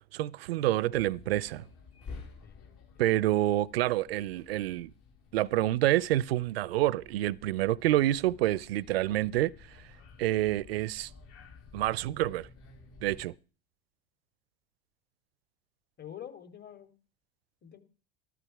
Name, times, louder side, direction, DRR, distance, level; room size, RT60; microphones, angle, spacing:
voice 1, 0.1-1.6 3.0-4.9 5.3-9.5 10.2-11.1 11.7-12.5 13.0-13.3, right 15 dB, 80° right, 0.6 m, -28 dB
sound 1, 0.9-13.3, left 4 dB, 55° left, 7.3 m, -52 dB
voice 2, 2.4-2.8 16.0-16.9 17.6-17.8, left 10 dB, 35° left, 3.3 m, -46 dB
14.5 x 12.5 x 4.6 m
hypercardioid pair, 75°, 30 cm